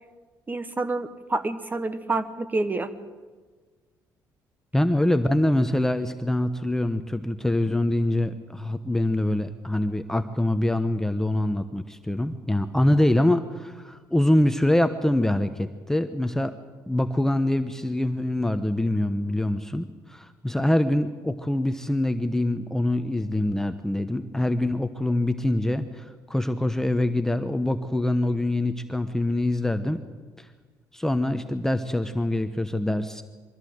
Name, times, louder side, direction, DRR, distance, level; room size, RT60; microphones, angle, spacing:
voice 1, 0.5-2.9, right 2 dB, 25° right, 12 dB, 1.3 m, -28 dB
voice 2, 4.7-16.5 16.9-30.0 30.4-30.5 30.9-33.2, left 1 dB, 5° left, 8 dB, 0.9 m, -24 dB
23.0 x 15.5 x 8.0 m, 1.4 s
cardioid pair, 100°, 7 cm